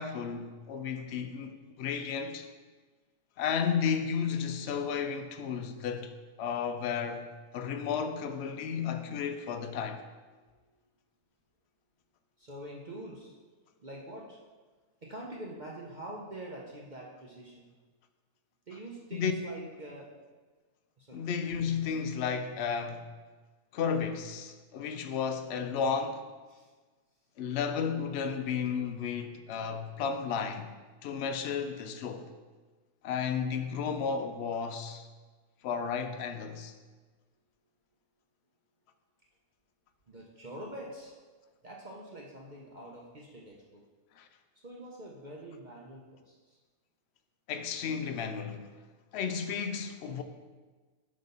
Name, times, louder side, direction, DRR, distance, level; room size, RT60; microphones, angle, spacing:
voice 1, 0.0-2.5 3.4-6.1 6.4-10.0 19.1-19.3 21.1-23.1 23.7-26.3 27.4-30.7 31.0-32.3 33.0-35.1 35.6-36.7 44.2-44.3 47.5-48.7 49.1-50.2, left 6 dB, 65° left, 0.7 m, -33 dB
voice 2, 10.3-10.9 12.4-13.3 13.8-14.4 15.0-17.7 18.7-20.1 21.0-21.2 26.5-26.7 40.1-41.1 41.6-43.8 44.6-46.6, right 1 dB, 40° right, 0.7 m, -45 dB
7.8 x 3.3 x 5.4 m
omnidirectional pair, 1.5 m